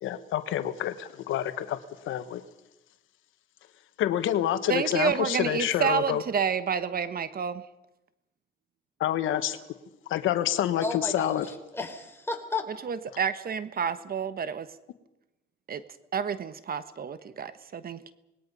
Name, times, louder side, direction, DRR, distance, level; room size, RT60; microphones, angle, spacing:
voice 1, 0.0-2.4 4.0-6.2 9.0-9.6 10.1-11.4, left 11 dB, 85° left, 11 dB, 1.3 m, -28 dB
voice 2, 4.7-7.6 12.8-14.7 15.7-15.8 16.1-18.1, right 7 dB, 50° right, 13 dB, 1.1 m, -29 dB
voice 3, 10.8-12.7, left 3 dB, 10° left, 4 dB, 4.2 m, -33 dB
27.0 x 20.5 x 5.5 m, 0.95 s
cardioid pair, 90°, 20 cm